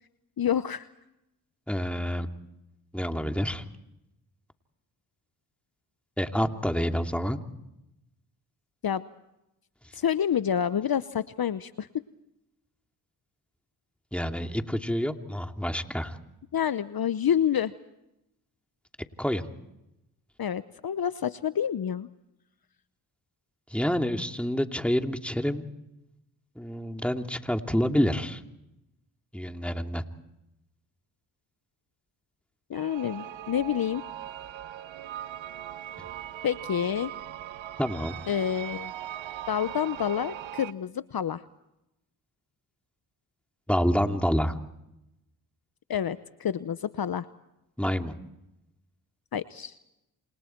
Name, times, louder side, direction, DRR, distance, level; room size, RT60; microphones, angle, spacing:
voice 1, 0.4-0.9 8.8-9.0 9.9-11.9 16.5-17.7 20.4-22.1 32.7-34.0 36.4-37.1 38.3-38.9 39.5-41.4 45.9-47.3 49.3-49.8, left 9 dB, 50° left, 14 dB, 0.9 m, -28 dB
voice 2, 1.7-2.3 2.9-3.7 6.2-7.4 14.1-16.2 19.2-19.4 23.7-25.7 26.6-28.4 29.3-30.0 37.8-38.2 43.7-44.6 47.8-48.1, equal, 5° left, 5 dB, 2.6 m, -28 dB
sound 1, 32.7-40.7, right 11 dB, 80° right, 1.0 m, -40 dB
28.5 x 27.5 x 4.6 m, 0.88 s
supercardioid pair, 45°, 45 cm